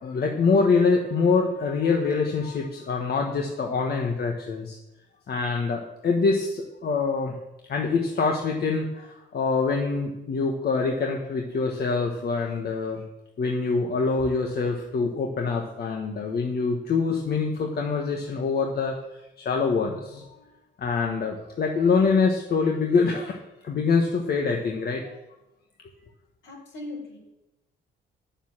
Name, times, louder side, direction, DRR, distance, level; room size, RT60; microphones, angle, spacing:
voice 1, 0.0-4.8 5.3-7.3 7.7-13.0 13.4-20.3 20.8-23.4 23.6-25.2, left 4 dB, 55° left, 1 dB, 1.3 m, -25 dB
voice 2, 26.4-27.2, left 2 dB, 70° left, -1 dB, 4.6 m, -38 dB
9.6 x 7.2 x 7.4 m, 0.96 s
cardioid pair, 90°, 20 cm